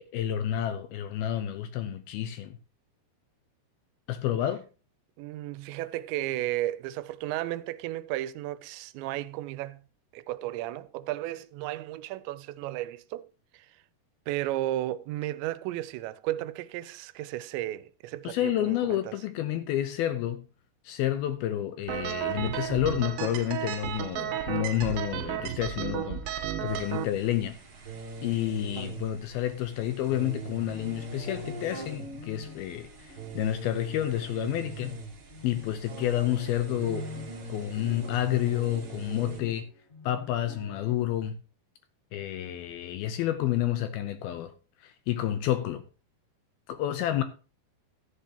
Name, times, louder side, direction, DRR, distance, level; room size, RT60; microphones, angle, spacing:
voice 1, 0.1-2.6 4.1-4.6 18.2-20.5 20.8-27.6 28.2-35.0 35.4-37.1 37.5-39.7 40.0-41.4 42.1-44.5 44.8-45.8 46.7-47.2, left 12 dB, 75° left, 2.4 m, -30 dB
voice 2, 5.2-9.8 10.1-13.2 13.5-13.7 14.3-19.1, right 15 dB, 90° right, 2.9 m, -34 dB
sound 1, 21.9-27.0, right 11 dB, 75° right, 2.3 m, -33 dB
sound 2, 26.7-39.4, right 4 dB, 35° right, 2.6 m, -42 dB
sound 3, 30.6-41.1, left 3 dB, 25° left, 1.6 m, -46 dB
14.5 x 10.5 x 2.8 m
omnidirectional pair, 5.0 m